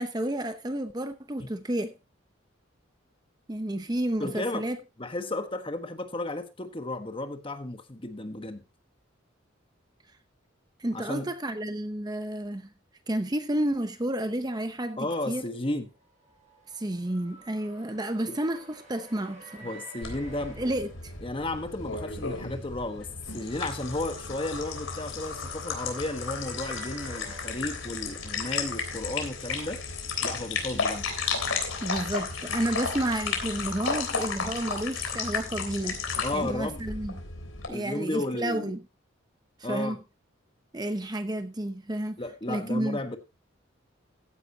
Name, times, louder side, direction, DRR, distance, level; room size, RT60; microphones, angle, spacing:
voice 1, 0.0-1.9 3.5-4.8 10.8-12.7 13.1-15.4 16.7-19.7 20.6-21.1 31.8-37.2 37.7-38.8 39.7-40.0 40.7-42.2 42.5-43.0, right 1 dB, 20° right, 0.8 m, -31 dB
voice 2, 4.2-4.6 5.0-8.6 10.9-11.3 15.0-15.9 18.3-18.4 19.6-20.6 21.2-23.1 23.3-29.8 30.2-31.1 36.2-36.8 37.7-38.7 39.6-40.0 42.2-43.2, left 2 dB, 25° left, 1.3 m, -33 dB
sound 1, 15.9-21.5 22.9-28.2, right 2 dB, 35° right, 5.7 m, -51 dB
sound 2, 20.0-37.7, left 5 dB, 85° left, 3.4 m, -33 dB
15.0 x 10.0 x 2.8 m
head